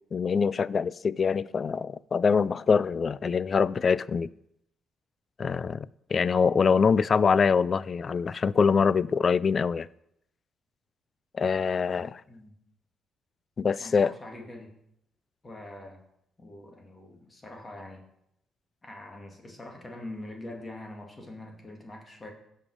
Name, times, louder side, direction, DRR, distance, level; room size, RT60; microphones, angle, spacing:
voice 1, 0.1-4.3 5.4-9.9 11.3-12.2 13.6-14.1, left 5 dB, 40° left, 0.3 m, -24 dB
voice 2, 13.8-14.7 15.4-16.0 16.4-18.0 18.8-22.3, left 1 dB, 25° left, 2.3 m, -43 dB
15.5 x 5.5 x 4.9 m
cardioid pair, 90°, 0 cm